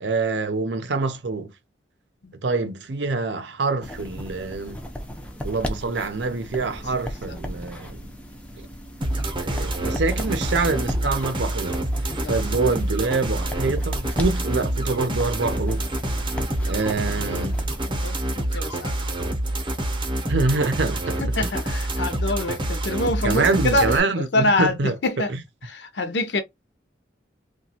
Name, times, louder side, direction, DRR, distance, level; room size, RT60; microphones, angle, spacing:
voice 1, 0.0-1.5 2.4-4.8 5.4-8.1 9.4-11.8 12.3-15.8 16.7-17.6 20.3-21.5 23.2-24.9 25.3-25.4, right 3 dB, 75° right, 0.6 m, -25 dB
sound 1, 3.8-17.8, equal, 5° left, 0.4 m, -36 dB
sound 2, 9.0-24.0, right 1 dB, 25° right, 0.7 m, -27 dB
voice 2, 17.9-19.2 21.2-24.8 25.0-25.3 25.7-26.4, left 2 dB, 70° left, 0.6 m, -26 dB
2.9 x 2.3 x 2.7 m
head